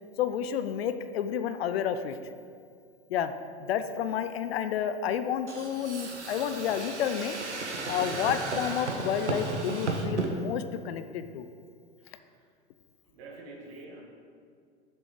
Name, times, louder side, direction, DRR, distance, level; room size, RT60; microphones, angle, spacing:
voice 1, 0.2-2.2 3.1-3.3 3.6-7.4 7.9-11.5, left 9 dB, 60° left, 10 dB, 0.6 m, -30 dB
sound 1, 5.5-10.3, right 3 dB, 85° right, 1.1 m, -34 dB
voice 2, 13.1-14.0, right 2 dB, 55° right, -1 dB, 2.1 m, -46 dB
6.9 x 6.9 x 4.9 m, 2.2 s
figure-of-eight pair, 90°, 34 cm